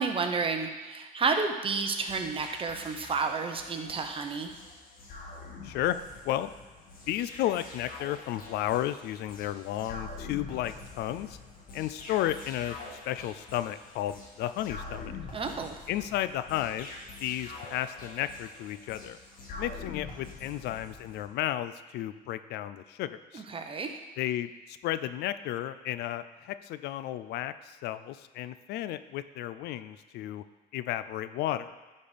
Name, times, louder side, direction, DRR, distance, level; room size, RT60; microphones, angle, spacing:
voice 1, 0.0-4.5 15.3-15.7 23.3-24.0, right 4 dB, 35° right, 5 dB, 1.0 m, -31 dB
sound 1, 2.1-21.3, left 3 dB, 55° left, 2.1 m, -45 dB
voice 2, 5.6-6.0 6.2-6.5 7.1-11.4 11.7-12.8 13.1-15.2 15.9-16.9 17.2-19.2 19.6-23.4 24.2-30.4 30.7-31.8, left 13 dB, 80° left, 13 dB, 0.4 m, -33 dB
11.0 x 4.3 x 5.1 m, 1.2 s
cardioid pair, 110°, 17 cm